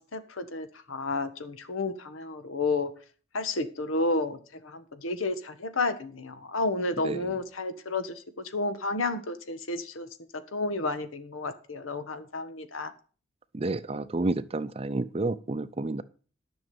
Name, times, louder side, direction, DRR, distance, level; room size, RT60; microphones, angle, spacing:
voice 1, 0.0-2.9 3.3-8.2 8.5-10.1 10.5-12.9, left 2 dB, 90° left, 1.4 m, -31 dB
voice 2, 13.6-16.0, right 2 dB, 30° right, 0.5 m, -30 dB
11.0 x 6.3 x 7.8 m
head